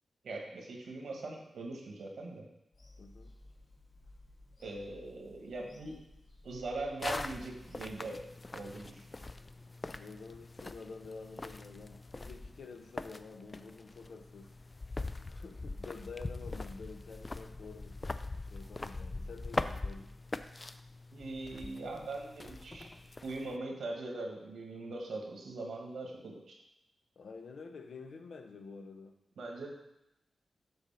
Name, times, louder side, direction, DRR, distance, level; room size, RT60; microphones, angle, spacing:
voice 1, 0.2-2.4 4.6-6.0 6.4-8.2 8.5-9.0 21.1-22.9 23.2-26.5 29.4-29.7, right 2 dB, 85° right, 1 dB, 1.5 m, -41 dB
Bird vocalization bird call bird song / Telephone, 2.7-7.8, left 1 dB, 55° left, 2.2 m, -57 dB
voice 2, 3.0-3.4 9.8-14.5 15.3-18.0 18.5-20.2 27.2-29.1, left 4 dB, 75° left, 5 dB, 0.8 m, -49 dB
sound 1, 7.0-23.6, left 2 dB, 25° left, 0.3 m, -42 dB
8.0 x 4.1 x 5.6 m, 0.85 s
wide cardioid pair, 120°, 0 cm